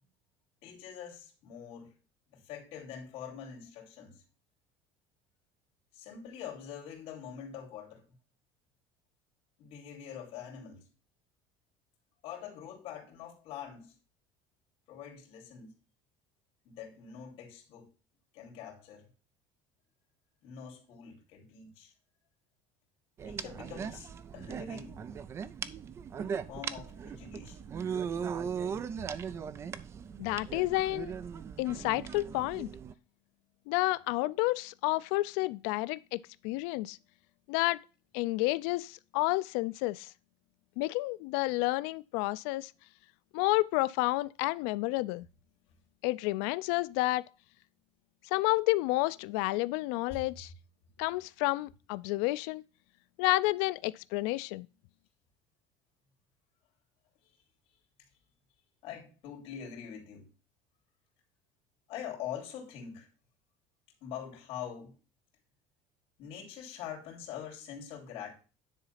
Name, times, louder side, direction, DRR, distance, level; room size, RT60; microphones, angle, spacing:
voice 1, 0.6-1.9 2.3-4.2 5.9-8.0 9.6-10.9 12.2-14.0 14.9-15.7 16.6-17.9 18.3-19.1 20.4-21.9 23.2-25.0 25.9-26.0 26.5-27.7 50.1-50.2 57.2-57.3 58.8-60.3 61.9-63.1 64.0-65.0 66.2-68.3, left 8 dB, 50° left, 3.2 m, -44 dB
sound 1, 23.2-32.9, right 7 dB, 20° right, 0.4 m, -39 dB
voice 2, 30.2-31.1 31.6-32.7 33.7-37.0 37.5-37.8 38.1-40.1 40.8-42.7 43.3-45.3 46.0-47.3 48.3-50.5 51.0-52.6 53.2-54.7, left 20 dB, 80° left, 0.4 m, -30 dB
10.0 x 3.9 x 5.6 m
cardioid pair, 175°, 13 cm